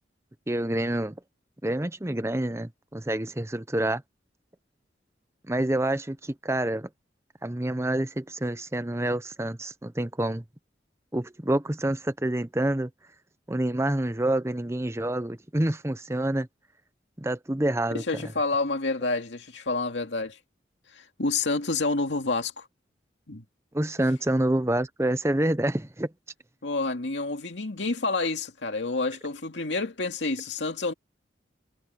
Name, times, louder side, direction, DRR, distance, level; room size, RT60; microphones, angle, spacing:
voice 1, 0.5-1.2 1.6-4.0 5.5-6.9 7.4-10.4 11.1-12.9 13.5-16.5 17.2-18.0 23.7-26.1, right 1 dB, 15° right, 0.8 m, -27 dB
voice 2, 17.9-20.4 20.9-22.7 23.3-23.4 26.6-30.9, left 3 dB, 80° left, 2.3 m, -28 dB
head